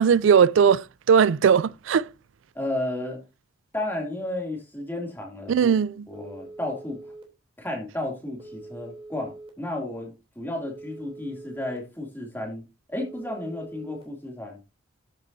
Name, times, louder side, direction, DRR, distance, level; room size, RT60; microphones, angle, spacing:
voice 1, 0.0-2.1 5.5-5.9, right 7 dB, 70° right, 0.4 m, -19 dB
voice 2, 2.5-3.2 3.7-5.8 6.1-7.0 7.6-12.6 12.9-14.6, left 1 dB, 10° left, 2.6 m, -33 dB
Telephone, 6.1-7.2 8.4-9.5 10.7-11.8 12.9-14.0, right 2 dB, 25° right, 3.0 m, -43 dB
13.5 x 7.4 x 2.7 m
head